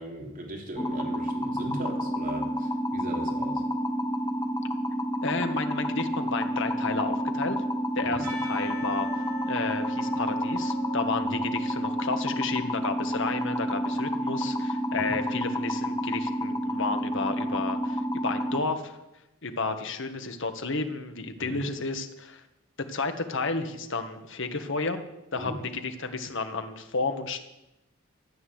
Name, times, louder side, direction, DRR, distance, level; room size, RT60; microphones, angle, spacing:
voice 1, 0.0-3.6 8.0-8.3 11.2-11.3 14.9-15.1 21.4-21.6 25.3-25.6, right 1 dB, 45° right, 0 dB, 3.4 m, -38 dB
sound 1, 0.8-18.6, equal, 20° left, 1.0 m, -29 dB
voice 2, 5.2-7.6 7.9-9.1 9.5-19.0 19.4-22.4 22.9-25.1 25.3-27.4, left 3 dB, 65° left, 7 dB, 1.6 m, -32 dB
Percussion / Church bell, 8.2-13.0, equal, 75° right, 5.8 m, -41 dB
14.0 x 9.7 x 8.0 m, 0.94 s
head